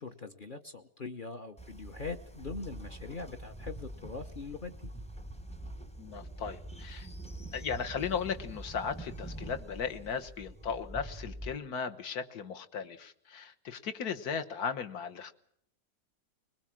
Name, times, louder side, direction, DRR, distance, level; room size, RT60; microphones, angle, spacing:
voice 1, 0.0-4.9, left 4 dB, 35° left, 9 dB, 1.0 m, -42 dB
Train, 1.6-11.6, right 1 dB, 5° left, 0.8 m, -45 dB
voice 2, 6.0-7.1 7.5-15.3, left 6 dB, 60° left, 8 dB, 1.7 m, -36 dB
22.0 x 21.0 x 7.5 m, 0.71 s
omnidirectional pair, 1.9 m